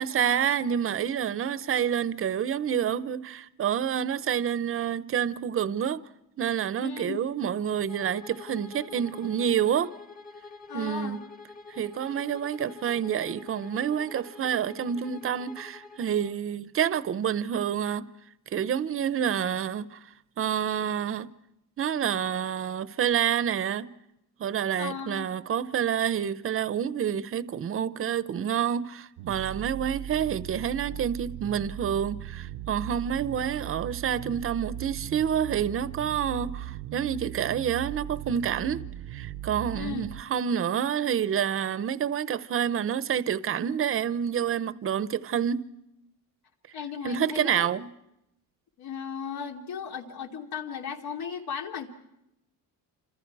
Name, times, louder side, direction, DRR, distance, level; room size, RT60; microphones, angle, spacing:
voice 1, 0.0-6.0 6.4-9.9 10.7-11.2 11.7-18.1 18.5-20.0 20.4-21.3 21.8-23.9 24.4-38.8 39.1-45.7 47.0-47.9, right 8 dB, 35° right, 0.8 m, -28 dB
voice 2, 6.8-7.3 10.7-11.2 24.8-25.3 39.7-40.1 46.7-47.7 48.8-51.9, left 7 dB, 70° left, 2.8 m, -36 dB
Bowed string instrument, 7.9-16.4, left 4 dB, 20° left, 1.2 m, -47 dB
sound 1, 29.2-40.2, right 13 dB, 85° right, 0.8 m, -38 dB
29.0 x 27.0 x 4.7 m
cardioid pair, 160°, 38 cm